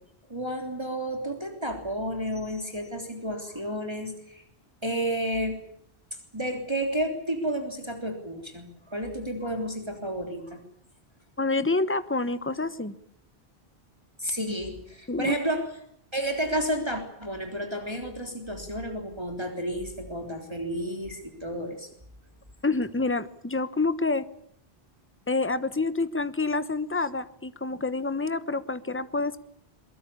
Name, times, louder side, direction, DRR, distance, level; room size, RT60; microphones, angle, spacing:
voice 1, 0.3-4.4 4.8-5.6 6.3-10.6 14.2-15.7 16.1-21.9, equal, 25° right, 4 dB, 3.6 m, -31 dB
voice 2, 11.4-12.9 15.1-15.3 22.6-24.3 25.3-29.4, left 3 dB, 10° left, 13 dB, 1.2 m, -27 dB
23.0 x 22.5 x 8.6 m, 0.67 s
omnidirectional pair, 1.0 m